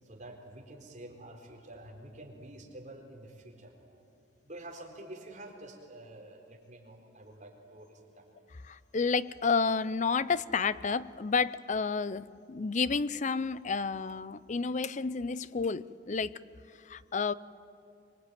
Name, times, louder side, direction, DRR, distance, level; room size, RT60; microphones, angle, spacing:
voice 1, 0.0-4.1 4.4-8.3, right 1 dB, 40° right, 1 dB, 4.1 m, -48 dB
voice 2, 8.7-16.4 16.9-17.3, left 5 dB, 40° left, 17 dB, 0.6 m, -30 dB
24.5 x 22.5 x 9.2 m, 2.5 s
head